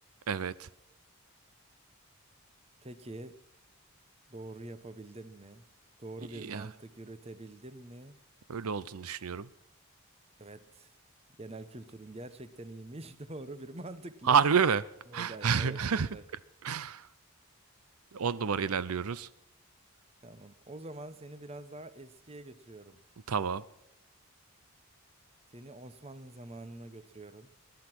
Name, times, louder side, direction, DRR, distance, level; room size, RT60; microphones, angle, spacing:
voice 1, 0.3-0.7 6.3-6.7 8.5-9.5 14.3-14.8 15.1-16.1 16.6-17.1 18.1-19.3 23.3-23.6, right 6 dB, 80° right, 18 dB, 0.6 m, -29 dB
voice 2, 2.8-3.4 4.3-5.7 6.0-8.2 10.4-10.9 11.4-14.4 15.1-16.2 20.2-23.0 25.5-27.5, right 2 dB, 25° right, 14 dB, 0.9 m, -45 dB
20.0 x 11.5 x 6.0 m, 0.86 s
head